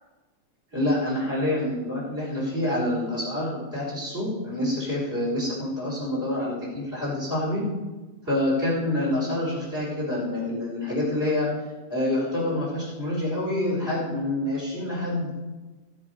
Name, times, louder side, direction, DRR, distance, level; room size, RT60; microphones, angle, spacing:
voice 1, 0.7-7.6 8.2-11.5 11.9-15.3, left 1 dB, 15° right, -6 dB, 4.9 m, -27 dB
18.0 x 7.3 x 4.9 m, 1.2 s
omnidirectional pair, 3.6 m